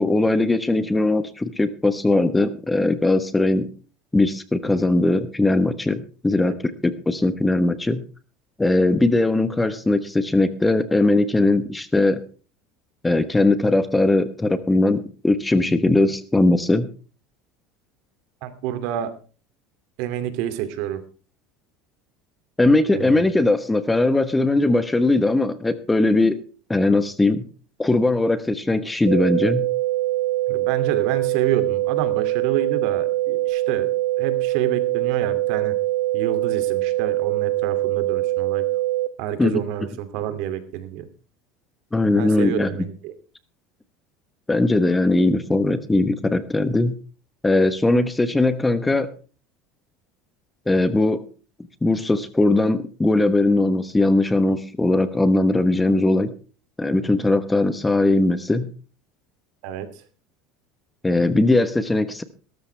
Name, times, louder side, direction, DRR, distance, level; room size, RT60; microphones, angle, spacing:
voice 1, 0.0-3.7 4.1-6.5 6.8-8.0 8.6-12.2 13.0-16.9 22.6-26.4 26.7-27.5 27.8-29.7 39.4-39.6 41.9-42.7 44.5-47.0 47.4-49.1 50.7-51.2 51.8-56.3 56.8-58.7 61.0-62.2, left 2 dB, 10° left, 13 dB, 1.1 m, -20 dB
voice 2, 18.4-19.1 20.0-21.0 22.9-23.2 30.5-33.9 34.2-35.8 36.1-38.6 39.2-41.1 42.2-43.1 59.6-60.0, right 11 dB, 65° right, 11 dB, 2.6 m, -28 dB
sound 1, 29.1-39.1, right 16 dB, 80° right, 1.2 m, -23 dB
17.5 x 13.5 x 3.4 m, 0.36 s
supercardioid pair, 140°, 0 cm